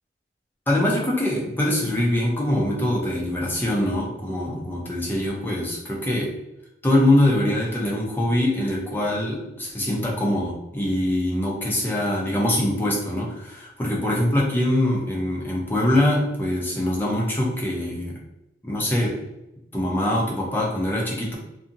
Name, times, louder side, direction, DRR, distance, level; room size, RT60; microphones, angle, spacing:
voice 1, 0.7-6.3 6.8-18.1 18.6-19.2 19.7-21.4, left 1 dB, 10° left, -3 dB, 0.5 m, -23 dB
2.6 x 2.6 x 2.6 m, 0.93 s
head